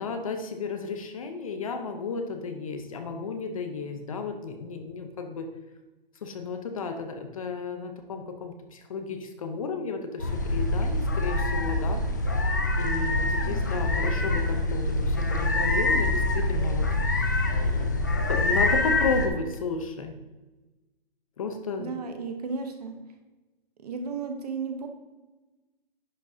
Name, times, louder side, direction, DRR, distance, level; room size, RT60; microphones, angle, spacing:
voice 1, 0.0-5.5 6.2-12.0 12.8-16.9 17.2-20.1 21.4-22.0, left 4 dB, 35° left, 5 dB, 0.8 m, -33 dB
sound 1, 10.2-19.3, left 2 dB, 20° left, 0.4 m, -25 dB
voice 2, 21.8-22.9 23.8-24.9, right 5 dB, 40° right, 5 dB, 1.0 m, -34 dB
10.5 x 6.1 x 2.7 m, 1.2 s
hypercardioid pair, 160°, 30 cm